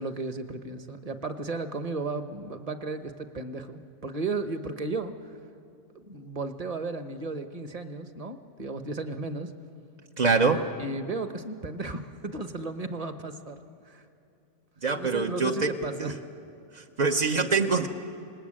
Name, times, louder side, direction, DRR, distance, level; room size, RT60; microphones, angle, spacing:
voice 1, 0.0-5.2 5.9-9.5 10.8-13.6 13.8-14.0 14.9-16.2, right 3 dB, 30° right, 8 dB, 0.9 m, -34 dB
voice 2, 10.2-10.6 14.8-15.7 16.0-16.1 16.7-17.9, right 4 dB, 50° right, 3 dB, 0.5 m, -24 dB
27.0 x 19.5 x 8.8 m, 2.6 s
omnidirectional pair, 1.9 m